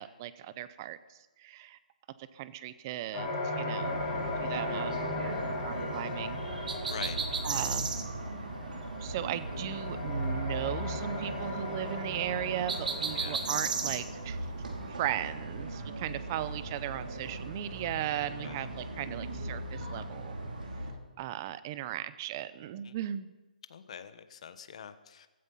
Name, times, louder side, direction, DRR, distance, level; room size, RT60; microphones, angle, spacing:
voice 1, 0.0-1.8 2.2-4.1 4.3-5.1 5.4-6.4 7.4-7.9 9.0-14.5 14.9-20.4 21.2-23.3, right 12 dB, 25° right, 16 dB, 0.6 m, -37 dB
sound 1, 3.1-14.6, left 2 dB, 20° left, 4.3 m, -38 dB
sound 2, 3.8-20.9, right 1 dB, 90° right, 4.7 m, -39 dB
sound 3, 6.7-8.0 12.7-14.0, right 5 dB, 70° right, 2.1 m, -33 dB
voice 2, 6.9-7.2 13.1-13.4 18.4-18.7 22.8-22.9 23.7-25.3, left 7 dB, 45° left, 11 dB, 1.2 m, -44 dB
15.5 x 15.0 x 5.6 m, 1.1 s
hypercardioid pair, 170°, 5 cm